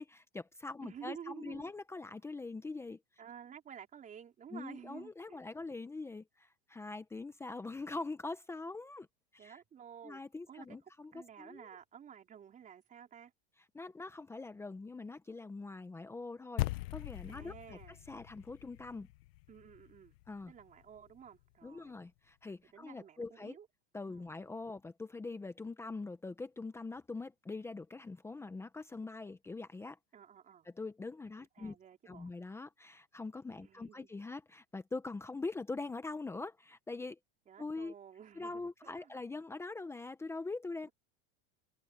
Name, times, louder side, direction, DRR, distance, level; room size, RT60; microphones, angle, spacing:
voice 1, 0.0-3.0 4.5-9.1 9.3-9.6 10.0-11.7 13.7-16.7 16.9-17.8 18.1-19.1 20.3-20.5 21.6-23.6 23.9-30.0 30.6-31.8 32.1-37.2 37.6-37.9 38.3-40.9, left 3 dB, 10° left, 0.8 m, -43 dB
voice 2, 0.8-1.7 3.2-5.4 9.4-10.2 10.5-10.8 11.1-13.3 17.3-18.0 19.5-20.1 20.5-22.0 22.7-23.7 24.1-24.3 30.1-30.7 31.6-32.3 33.6-34.1 37.5-39.1, right 8 dB, 25° right, 4.2 m, -52 dB
sound 1, 16.6-21.1, left 18 dB, 70° left, 0.8 m, -41 dB
supercardioid pair, 150°, 32 cm